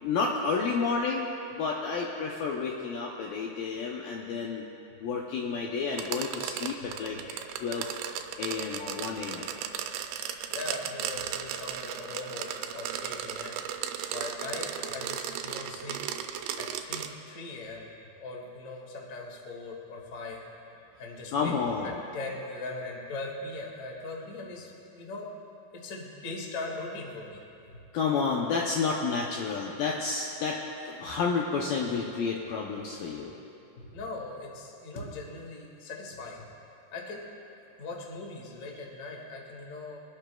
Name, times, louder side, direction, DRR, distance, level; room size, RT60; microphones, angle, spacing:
voice 1, 0.0-4.6 5.0-8.0 8.4-9.5 21.3-22.0 27.9-30.6 30.9-33.3, left 5 dB, 80° left, -2 dB, 2.1 m, -30 dB
sound 1, 5.9-17.1, right 9 dB, 85° right, 2.9 m, -36 dB
voice 2, 10.5-12.5 12.7-13.6 14.1-16.0 16.6-17.9 18.2-20.4 21.0-25.3 25.7-27.4 33.8-36.4 36.9-37.3 37.8-40.0, left 3 dB, 50° left, -2 dB, 0.9 m, -40 dB
25.0 x 12.0 x 2.3 m, 2.7 s
omnidirectional pair, 5.0 m